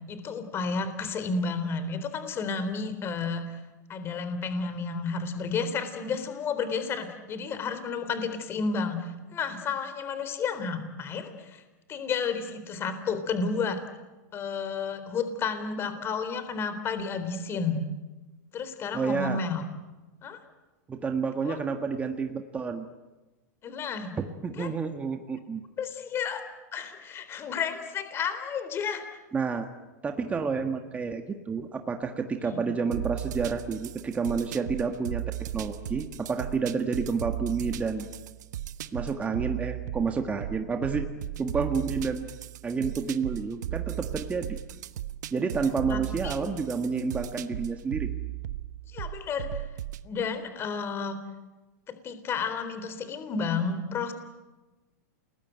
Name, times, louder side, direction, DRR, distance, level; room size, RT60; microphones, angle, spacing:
voice 1, 0.1-3.4 3.9-11.6 11.9-13.8 14.3-17.8 18.5-19.6 20.2-20.4 21.4-21.6 23.6-24.1 24.6-24.7 25.8-26.4 26.7-29.0 32.4-32.7 45.9-46.3 48.9-49.6 50.0-51.2 52.0-54.1, left 5 dB, 25° left, 10 dB, 3.8 m, -31 dB
voice 2, 18.9-19.4 20.9-22.9 24.4-25.6 29.3-29.7 30.0-38.1 38.9-41.1 41.4-42.2 42.6-44.6 45.3-48.1, right 5 dB, 15° right, 5 dB, 1.7 m, -30 dB
sound 1, 32.9-50.1, right 13 dB, 80° right, 1.1 m, -36 dB
29.5 x 21.0 x 9.1 m, 1.1 s
supercardioid pair, 145°, 9 cm